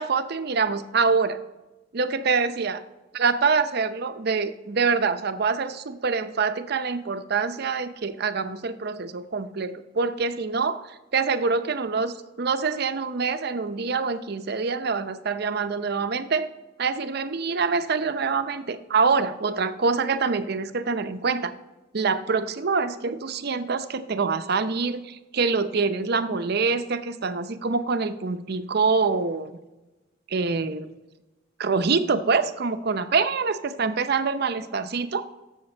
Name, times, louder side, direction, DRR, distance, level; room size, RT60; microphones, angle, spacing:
voice 1, 0.0-1.4 1.9-2.8 3.1-10.8 11.1-16.5 16.8-21.5 21.9-29.5 30.3-30.9 31.6-35.2, right 4 dB, 55° right, 11 dB, 0.6 m, -25 dB
17.0 x 7.3 x 4.4 m, 1.1 s
head